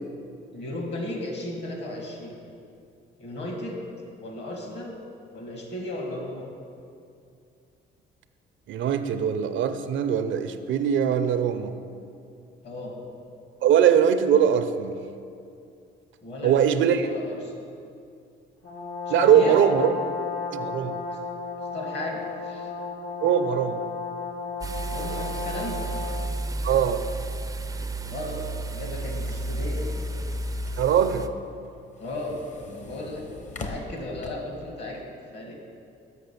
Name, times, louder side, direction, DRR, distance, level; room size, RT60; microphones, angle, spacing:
voice 1, 0.5-2.4 3.2-3.8 4.2-5.0 5.3-6.5 12.6-12.9 16.2-17.5 19.2-19.6 21.1-21.2 21.7-22.7 24.9-25.8 28.0-28.4 28.7-29.8 32.0-32.4 32.7-33.2 33.6-35.0 35.3-35.5, left 1 dB, 60° left, 1 dB, 1.9 m, -35 dB
voice 2, 8.7-11.8 13.6-14.9 16.4-17.1 19.1-19.9 20.5-21.0 23.2-23.8 26.6-27.0 30.8-31.3, right 8 dB, 75° right, 10 dB, 0.5 m, -21 dB
Brass instrument, 18.6-26.4, left 4 dB, 80° left, 1.4 m, -33 dB
sound 1, 24.6-31.3, right 2 dB, 15° right, 0.4 m, -32 dB
sound 2, 28.3-34.7, left 2 dB, 35° left, 0.8 m, -43 dB
6.6 x 5.5 x 6.8 m, 2.5 s
cardioid pair, 90°, 20 cm